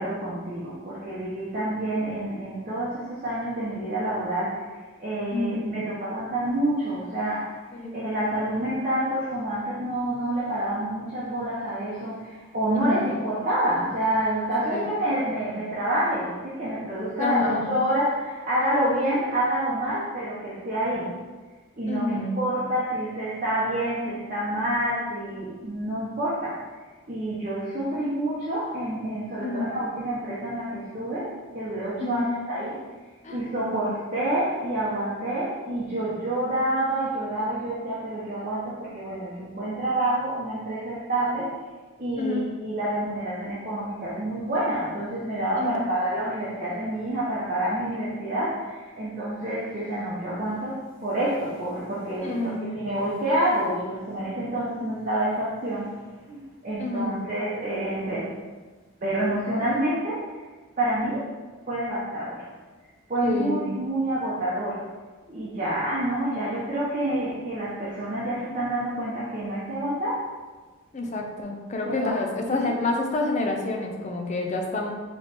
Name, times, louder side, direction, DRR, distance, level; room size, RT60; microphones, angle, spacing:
voice 1, 0.0-21.1 21.7-26.6 27.1-32.8 33.3-41.6 42.0-55.9 56.3-58.3 59.0-60.4 60.8-61.3 61.7-62.5 63.1-64.8 65.3-70.2 71.8-72.1 72.4-72.7, right 1 dB, 35° right, -9 dB, 0.7 m, -28 dB
voice 2, 5.3-5.6 7.7-7.9 12.7-13.1 14.6-14.9 17.2-17.9 21.9-22.4 29.4-29.7 32.0-32.4 33.2-33.4 33.6-33.9 42.2-42.5 45.5-45.9 52.2-52.8 56.8-57.2 63.2-63.7 70.9-74.9, left 2 dB, 35° left, 1 dB, 0.5 m, -28 dB
4.2 x 3.0 x 3.3 m, 1.3 s
head